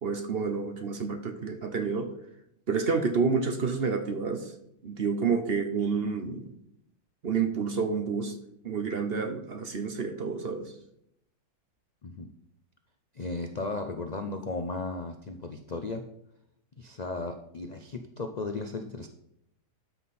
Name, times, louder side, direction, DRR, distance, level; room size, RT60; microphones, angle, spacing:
voice 1, 0.0-2.1 2.7-4.5 4.8-6.5 7.2-8.4 8.6-10.7, right 5 dB, 45° right, 7 dB, 0.9 m, -29 dB
voice 2, 13.1-16.0 16.8-19.1, left 3 dB, 60° left, 6 dB, 0.4 m, -35 dB
12.5 x 5.7 x 4.2 m, 0.75 s
omnidirectional pair, 1.7 m